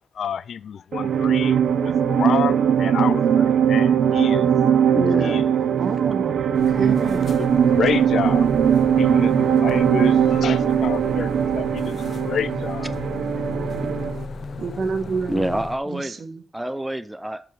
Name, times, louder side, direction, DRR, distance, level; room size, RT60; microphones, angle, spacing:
voice 1, 0.2-4.5 5.2-5.5 7.4-8.5 9.0-11.9 12.2-12.9, left 7 dB, 65° left, 0.4 m, -29 dB
sound 1, 0.9-14.2, right 8 dB, 80° right, 0.7 m, -20 dB
voice 2, 4.9-5.5 15.3-16.2 16.5-17.4, right 1 dB, 5° right, 0.4 m, -26 dB
voice 3, 5.8-7.4 14.6-16.4, right 5 dB, 50° right, 1.2 m, -30 dB
sound 2, 6.5-15.8, left 3 dB, 50° left, 0.9 m, -35 dB
6.9 x 6.1 x 6.5 m
wide cardioid pair, 175°, 0 cm